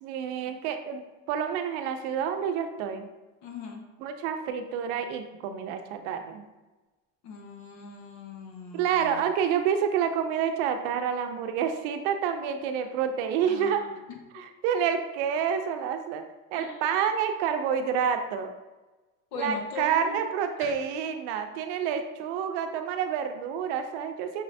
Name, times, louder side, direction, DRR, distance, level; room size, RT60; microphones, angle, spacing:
voice 1, 0.0-3.1 4.0-6.4 8.7-13.9 14.3-16.2 16.5-18.5 19.4-24.4, right 7 dB, 65° right, 6 dB, 0.5 m, -28 dB
voice 2, 3.4-3.9 7.2-9.3 13.5-13.9 16.5-16.8 19.3-20.1 20.6-20.7, left 4 dB, 80° left, 2 dB, 1.0 m, -40 dB
5.5 x 3.2 x 2.7 m, 1.1 s
cardioid pair, 180°, 37 cm